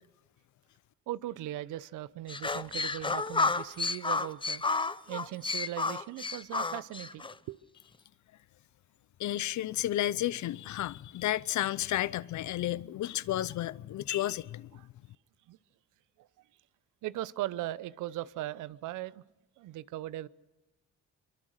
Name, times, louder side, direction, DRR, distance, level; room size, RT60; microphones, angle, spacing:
voice 1, 1.1-4.6 5.1-7.6 14.8-14.9 15.5-15.6 17.0-19.2 19.6-20.3, right 14 dB, 85° right, 0.8 m, -39 dB
sound 1, 2.3-7.3, left 3 dB, 15° left, 0.7 m, -31 dB
voice 2, 9.2-14.7, left 13 dB, 70° left, 0.7 m, -32 dB
24.0 x 23.5 x 6.6 m
cardioid pair, 90°, 30 cm